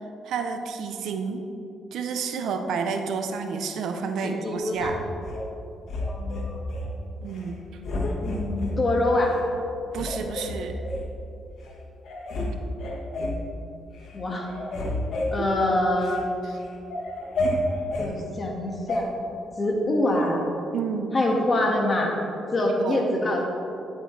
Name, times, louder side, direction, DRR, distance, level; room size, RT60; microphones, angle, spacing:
voice 1, 0.2-1.4 1.9-4.9 7.2-7.6 9.9-10.8 15.4-15.5 20.7-21.1 22.8-23.0, right 5 dB, 75° right, 6 dB, 0.7 m, -30 dB
voice 2, 4.2-4.9 6.1-6.6 8.2-9.4 14.1-14.5 15.3-16.2 18.0-19.1 19.6-20.4 21.1-22.2 22.5-23.4, left 1 dB, 35° left, 0 dB, 1.7 m, -25 dB
sound 1, 4.8-5.4 5.9-6.9 7.3-7.5 7.8-8.8 9.3-9.4 9.9-11.1 11.7-11.8 12.0-12.5 12.8-13.4 13.9-14.1 14.4-16.2 16.6-18.1 18.9-19.0, left 1 dB, 65° left, 1.5 m, -30 dB
11.0 x 8.1 x 3.3 m, 2.8 s
cardioid pair, 90°, 0 cm